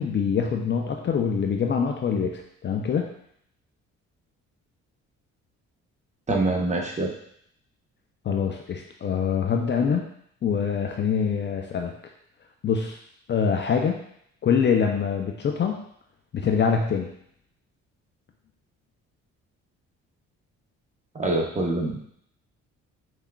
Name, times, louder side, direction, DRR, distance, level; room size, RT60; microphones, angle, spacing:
voice 1, 0.0-3.1 8.2-10.1 10.4-11.9 12.6-13.0 13.3-14.0 14.4-15.8 16.3-17.1, left 6 dB, 40° left, 2 dB, 0.4 m, -24 dB
voice 2, 6.3-7.1 21.1-22.1, right 2 dB, 25° right, -1 dB, 0.7 m, -25 dB
5.5 x 2.3 x 2.3 m, 0.70 s
cardioid pair, 90°, 30 cm